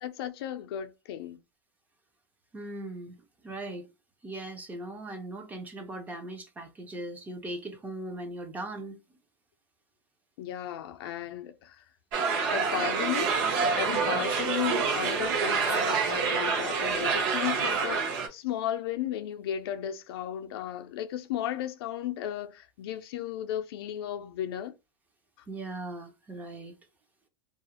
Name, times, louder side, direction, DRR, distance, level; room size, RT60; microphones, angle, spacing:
voice 1, 0.0-1.4 10.4-11.8 12.5-24.7, left 11 dB, 75° left, 0.4 m, -35 dB
voice 2, 2.5-3.1 3.4-3.9 4.2-9.0 14.1-14.2 25.5-26.8, right 2 dB, 10° right, 0.4 m, -39 dB
sound 1, 12.1-18.3, right 5 dB, 50° right, 0.7 m, -27 dB
2.4 x 2.0 x 2.8 m
supercardioid pair, 145°, 13 cm